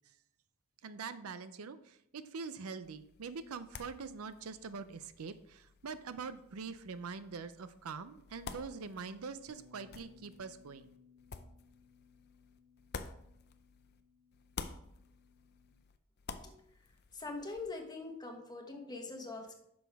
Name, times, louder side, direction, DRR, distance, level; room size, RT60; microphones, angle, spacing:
voice 1, 0.8-10.9, right 5 dB, 75° right, 13 dB, 0.5 m, -44 dB
sound 1, 2.8-14.0 14.3-17.7, left 5 dB, 45° left, 0.6 m, -51 dB
Bass guitar, 9.5-15.7, left 5 dB, 50° right, 1.2 m, -64 dB
voice 2, 17.1-19.5, left 3 dB, 20° left, 3 dB, 1.1 m, -43 dB
10.5 x 6.3 x 3.5 m, 0.75 s
head